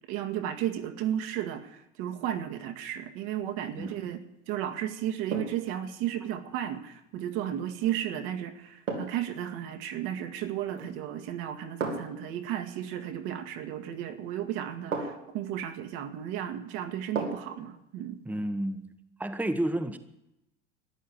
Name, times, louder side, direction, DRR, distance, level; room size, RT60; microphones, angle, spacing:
voice 1, 0.1-4.2 4.5-18.2, right 11 dB, 60° right, 6 dB, 2.0 m, -34 dB
sound 1, 3.7-4.1 5.3-5.7 7.8-8.0 8.9-9.3 10.7-11.1 11.8-12.2 13.9-14.0 14.9-15.4 17.2-17.6 18.0-18.1, right 4 dB, 90° right, 3.0 m, -35 dB
voice 2, 18.2-18.9 19.2-20.0, right 1 dB, 5° right, 8 dB, 1.2 m, -30 dB
13.5 x 10.5 x 8.8 m, 0.86 s
hypercardioid pair, 80°, 37 cm